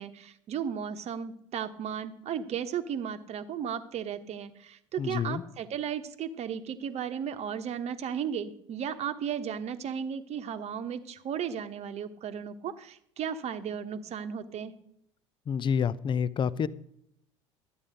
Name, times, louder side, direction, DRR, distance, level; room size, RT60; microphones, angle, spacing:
voice 1, 0.0-14.7, right 8 dB, 40° right, 9 dB, 1.1 m, -35 dB
voice 2, 5.0-5.4 15.5-16.7, left 7 dB, 30° left, 18 dB, 0.6 m, -28 dB
12.5 x 8.9 x 5.2 m, 0.74 s
figure-of-eight pair, 65°, 16 cm